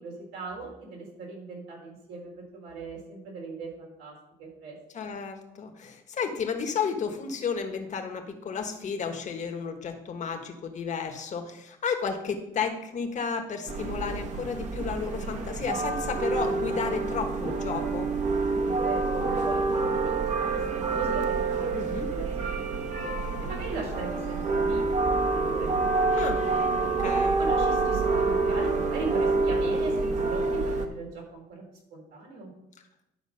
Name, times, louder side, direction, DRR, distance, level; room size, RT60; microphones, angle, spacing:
voice 1, 0.0-4.1 4.4-4.8 18.5-21.7 22.1-23.1 23.4-25.9 26.4-26.6 27.4-31.6 31.9-32.5, right 3 dB, 80° right, -1 dB, 3.8 m, -39 dB
voice 2, 4.9-18.1 21.7-22.1 26.1-26.4 26.8-27.4, left 5 dB, 45° left, 5 dB, 1.4 m, -32 dB
sound 1, 13.7-30.9, right 3 dB, 45° right, 1.2 m, -27 dB
11.5 x 4.5 x 5.7 m, 0.85 s
cardioid pair, 110°, 17 cm